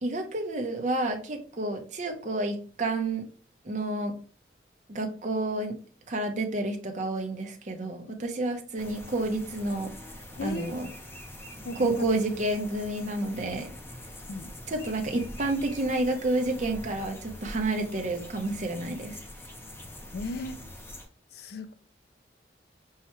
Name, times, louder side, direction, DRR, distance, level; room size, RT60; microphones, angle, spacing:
voice 1, 0.0-3.2 3.6-4.1 4.9-5.7 6.1-9.9 10.4-10.9 11.8-13.7 14.7-19.2, right 2 dB, 45° right, 4 dB, 0.7 m, -30 dB
sound 1, 8.8-21.1, left 1 dB, 15° left, 0.6 m, -44 dB
voice 2, 10.4-10.7 11.6-12.0 14.3-14.5 20.1-20.6 21.3-21.7, left 2 dB, 60° left, 10 dB, 0.4 m, -36 dB
5.5 x 2.3 x 3.0 m, 0.41 s
head